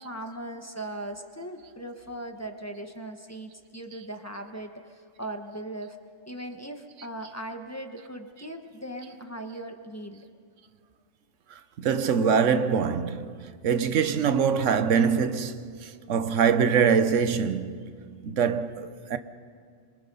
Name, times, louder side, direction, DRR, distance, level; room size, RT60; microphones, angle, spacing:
voice 1, 0.0-6.0 6.3-10.3, right 1 dB, 15° left, 1.1 m, -39 dB
voice 2, 11.8-13.4 13.6-19.2, right 6 dB, 85° right, 1.2 m, -24 dB
26.0 x 23.5 x 5.5 m
omnidirectional pair, 1.2 m